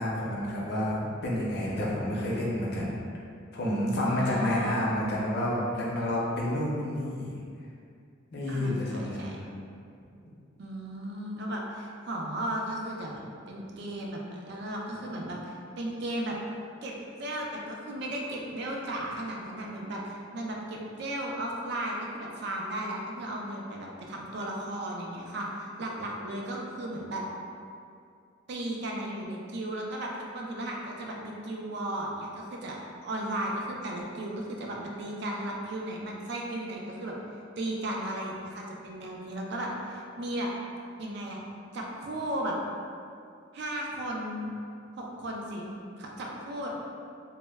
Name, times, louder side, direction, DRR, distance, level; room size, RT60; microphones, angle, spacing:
voice 1, 0.0-2.9 3.5-7.3 8.3-9.3, left 1 dB, 55° left, -5 dB, 0.5 m, -29 dB
voice 2, 4.0-4.9 8.5-9.4 10.6-16.3 16.8-27.2 28.5-37.1 37.6-40.5 41.0-41.4 41.7-42.5 43.5-44.5 45.0-46.8, right 1 dB, 60° right, -1 dB, 0.4 m, -35 dB
2.1 x 2.1 x 3.3 m, 2.4 s
head